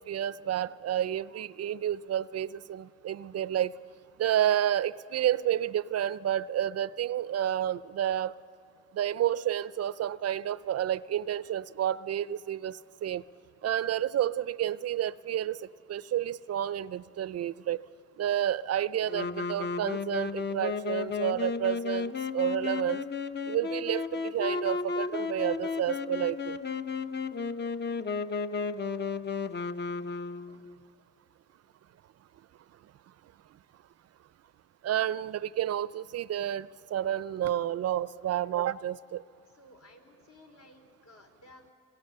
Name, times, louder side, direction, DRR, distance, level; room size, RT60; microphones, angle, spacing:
voice 1, 0.0-3.7 4.2-8.3 8.9-13.2 13.6-15.6 15.9-17.8 18.2-23.0 23.5-26.6 34.8-39.2, right 11 dB, 55° right, 18 dB, 0.5 m, -30 dB
Wind instrument woodwind instrument, 19.1-30.8, left 5 dB, 35° left, 0.9 m, -33 dB
voice 2, 39.5-41.7, left 1 dB, 60° left, 4 dB, 4.0 m, -56 dB
26.0 x 22.5 x 6.7 m, 2.5 s
cardioid pair, 90°, 30 cm